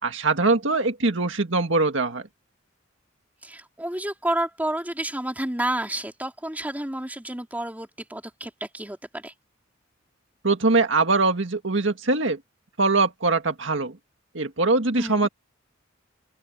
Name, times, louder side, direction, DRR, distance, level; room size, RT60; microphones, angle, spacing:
voice 1, 0.0-2.3 10.4-12.4 12.8-14.0 14.3-15.3, right 3 dB, 65° right, 2.0 m, -22 dB
voice 2, 3.4-9.3 15.0-15.3, right 1 dB, 10° right, 3.1 m, -30 dB
open air
head